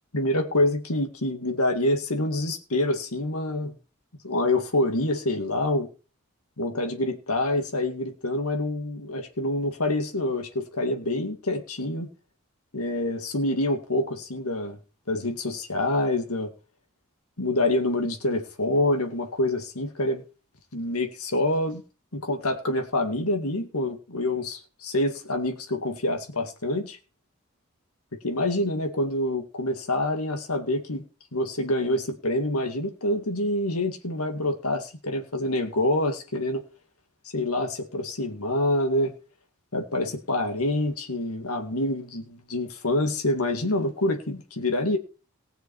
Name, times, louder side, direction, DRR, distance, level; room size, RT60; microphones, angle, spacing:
voice 1, 0.1-3.7 4.2-5.9 6.6-12.1 12.7-14.8 15.1-16.5 17.4-20.2 20.7-21.8 22.1-27.0 28.2-31.0 31.3-36.6 37.3-39.1 39.7-45.0, left 1 dB, 90° left, 4 dB, 2.2 m, -26 dB
19.0 x 6.8 x 4.5 m, 0.33 s
head